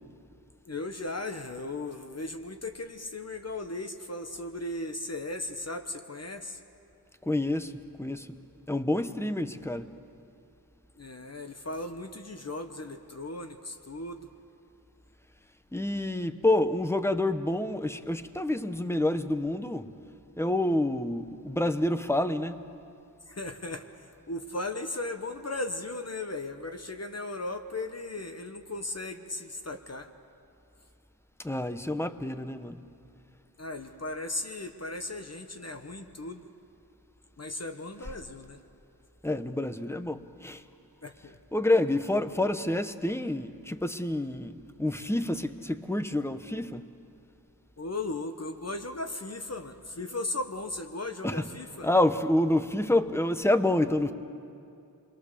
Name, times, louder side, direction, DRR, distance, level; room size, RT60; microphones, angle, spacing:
voice 1, 0.6-6.6 11.0-14.3 23.3-30.1 33.6-36.4 37.4-38.6 41.0-41.4 47.8-51.9, left 2 dB, 40° left, 6 dB, 1.1 m, -37 dB
voice 2, 7.3-7.7 8.0-8.4 8.7-9.9 15.7-19.9 20.4-22.6 31.4-32.8 39.2-40.6 41.5-46.9 51.2-51.4 51.8-54.1, left 1 dB, 5° left, 10 dB, 0.8 m, -28 dB
27.5 x 22.0 x 6.8 m, 2.6 s
wide cardioid pair, 90°, 39 cm